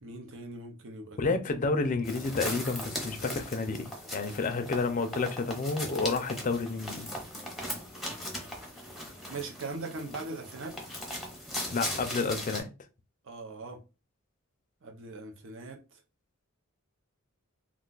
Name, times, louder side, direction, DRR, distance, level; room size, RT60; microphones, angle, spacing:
voice 1, 0.0-1.2 9.3-10.8 13.2-13.8 14.8-16.0, right 3 dB, 60° right, 0.6 m, -40 dB
voice 2, 1.2-7.1 11.7-12.7, left 3 dB, 35° left, 0.4 m, -30 dB
sound 1, 2.0-12.6, left 1 dB, ahead, 0.7 m, -39 dB
2.4 x 2.3 x 3.8 m
head